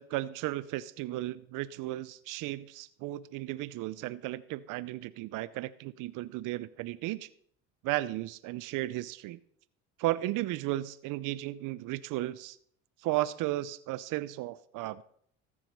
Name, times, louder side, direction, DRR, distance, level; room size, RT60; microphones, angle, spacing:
voice 1, 0.0-7.3 7.8-9.4 10.0-12.6 13.0-15.0, right 16 dB, 60° right, 18 dB, 0.7 m, -34 dB
14.5 x 6.3 x 5.4 m, 0.62 s
supercardioid pair, 80°, 36 cm